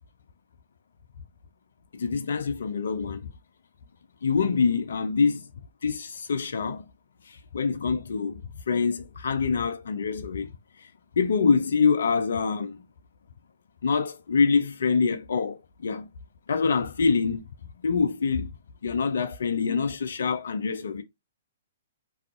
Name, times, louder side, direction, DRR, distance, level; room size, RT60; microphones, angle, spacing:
voice 1, 1.9-3.2 4.2-5.4 5.8-6.8 7.3-10.5 11.2-12.8 13.8-16.1 16.5-17.4 17.8-18.5 18.8-21.0, left 5 dB, 65° left, 0.3 m, -25 dB
2.3 x 2.3 x 2.4 m
figure-of-eight pair, 120°, 0 cm